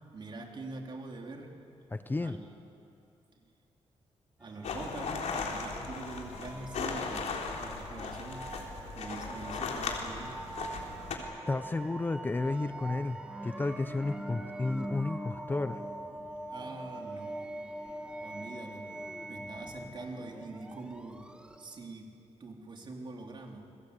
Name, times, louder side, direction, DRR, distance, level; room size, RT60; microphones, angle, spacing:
voice 1, 0.1-1.5 2.2-2.5 4.4-8.5 8.9-10.4 16.5-17.5 18.2-18.9 19.3-21.3 21.6-23.7, right 3 dB, 45° right, 1 dB, 3.8 m, -44 dB
voice 2, 1.9-2.4 11.5-15.8, left 2 dB, 20° left, 10 dB, 0.7 m, -32 dB
sound 1, 4.4-21.9, right 1 dB, 10° right, 1.6 m, -43 dB
sound 2, 4.6-11.2, left 5 dB, 80° left, 3.7 m, -37 dB
29.0 x 22.5 x 8.4 m, 2.7 s
wide cardioid pair, 140°, 11 cm